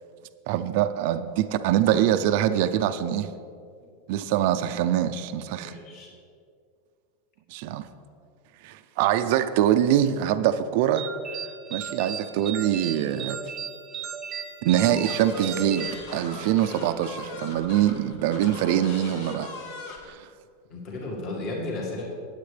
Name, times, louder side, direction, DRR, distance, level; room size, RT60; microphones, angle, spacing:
voice 1, 0.5-3.3 4.1-5.8 7.5-7.9 8.6-11.1 11.7-13.4 14.6-19.5 20.1-20.3, right 11 dB, 50° right, 9 dB, 0.5 m, -24 dB
voice 2, 5.6-6.1 20.7-22.0, left 2 dB, 35° left, -2 dB, 1.9 m, -34 dB
sound 1, 11.0-16.7, right 7 dB, 15° right, 0.9 m, -36 dB
sound 2, 14.7-20.1, left 3 dB, 65° left, 1.9 m, -39 dB
20.0 x 8.1 x 3.4 m, 2.3 s
supercardioid pair, 170°, 0 cm